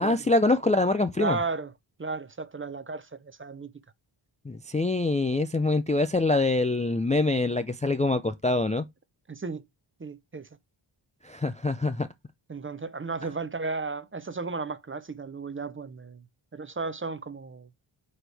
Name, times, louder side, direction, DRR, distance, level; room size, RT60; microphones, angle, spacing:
voice 1, 0.0-1.4 4.5-8.9 11.2-12.1, left 2 dB, 15° left, 0.4 m, -25 dB
voice 2, 1.2-1.7 2.0-3.7 9.3-9.6 10.0-10.5 12.5-16.2 16.5-17.7, right 4 dB, 25° right, 0.6 m, -34 dB
9.0 x 4.3 x 3.3 m
wide cardioid pair, 140°, 49 cm